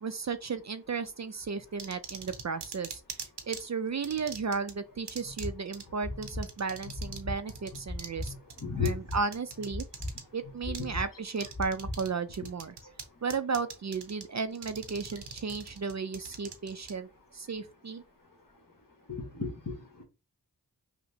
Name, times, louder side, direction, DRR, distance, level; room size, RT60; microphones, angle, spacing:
voice 1, 0.0-3.0 3.5-8.3 8.8-9.8 10.3-12.7 13.2-17.1 17.3-18.0, right 5 dB, 45° right, 0.4 m, -34 dB
sound 1, 1.8-3.6 4.0-4.7 5.1-5.5 5.7-5.8 6.2-7.2 7.5-10.2 10.7-10.9 11.4-12.1 12.3-13.0 13.3-14.2 14.6-16.9, right 5 dB, 80° right, 0.8 m, -41 dB
sound 2, 5.4-5.5 6.0-6.4 6.9-7.4 7.9-8.3 8.8-9.2 9.7-10.1 10.6-11.0 11.5-12.0, left 1 dB, 20° left, 1.8 m, -35 dB
voice 2, 8.2-8.9 19.1-20.0, left 5 dB, 55° left, 1.4 m, -34 dB
5.6 x 2.1 x 2.7 m
wide cardioid pair, 45°, 40 cm